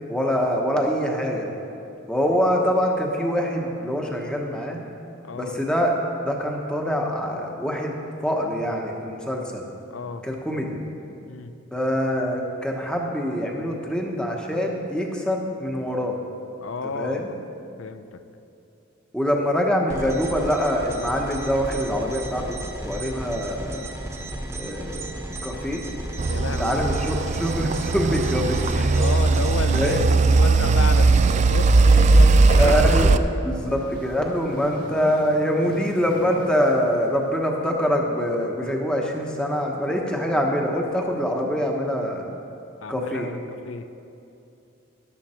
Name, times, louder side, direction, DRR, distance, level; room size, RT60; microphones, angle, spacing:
voice 1, 0.1-1.5 2.1-4.8 5.3-9.7 10.2-10.8 11.7-16.2 16.9-17.3 19.1-23.8 24.5-25.1 25.4-25.8 26.6-28.9 29.7-30.0 32.6-33.1 33.4-42.3 42.9-43.3, equal, 5° left, 0 dB, 1.1 m, -24 dB
voice 2, 5.2-5.6 9.9-10.2 11.3-11.5 16.6-17.4 17.8-18.2 26.3-27.3 28.5-32.8 33.1-33.2 34.5-34.6 42.8-43.9, left 4 dB, 85° left, 10 dB, 0.6 m, -33 dB
sound 1, 19.9-29.9, right 1 dB, 15° right, 1.2 m, -34 dB
sound 2, 26.2-33.2, right 3 dB, 35° right, 0.3 m, -18 dB
sound 3, 33.3-37.8, left 1 dB, 45° left, 1.5 m, -42 dB
13.0 x 11.5 x 4.4 m, 2.8 s
head